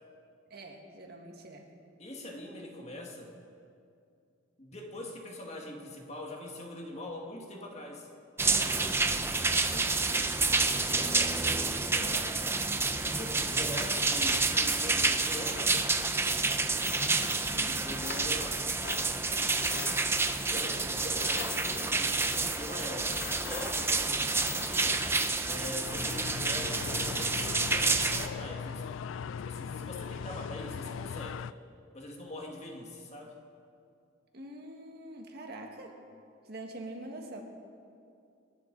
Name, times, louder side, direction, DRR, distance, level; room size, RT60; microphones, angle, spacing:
voice 1, 0.5-1.7 9.7-10.1 12.0-12.3 13.5-13.6 17.5-17.9 34.3-36.0 36.4-37.4, right 1 dB, 55° right, 2 dB, 1.8 m, -45 dB
voice 2, 2.0-3.3 4.6-8.1 11.0-11.4 11.8-12.6 13.0-15.8 17.6-18.6 19.4-20.1 20.5-25.0 25.4-28.8 29.5-31.5 31.9-33.4, left 1 dB, 35° left, 0 dB, 1.9 m, -43 dB
sound 1, 8.4-28.3, right 3 dB, 10° right, 0.6 m, -29 dB
sound 2, 16.6-18.6 18.8-25.3, left 7 dB, 50° left, 0.9 m, -44 dB
sound 3, 25.8-31.5, left 6 dB, 90° left, 0.4 m, -39 dB
26.0 x 10.5 x 4.0 m, 2.5 s
head